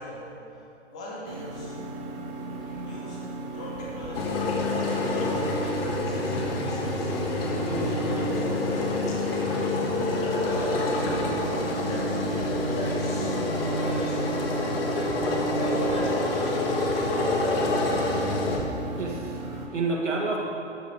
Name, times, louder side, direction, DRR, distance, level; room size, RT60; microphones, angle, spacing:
voice 1, 0.0-1.8 2.6-4.4 5.5-7.1 7.7-9.4 9.9-11.2 11.8-12.0 12.7-14.5 14.9-15.2 15.5-17.2, left 1 dB, 5° left, -4 dB, 0.3 m, -39 dB
sound 1, 1.2-19.7, right 2 dB, 35° right, 1.4 m, -37 dB
sound 2, 4.1-18.6, left 2 dB, 50° left, 1.6 m, -27 dB
voice 2, 19.0-19.4 19.7-20.4, right 3 dB, 75° right, -1 dB, 1.9 m, -29 dB
13.0 x 5.5 x 5.2 m, 2.7 s
figure-of-eight pair, 125°, 36 cm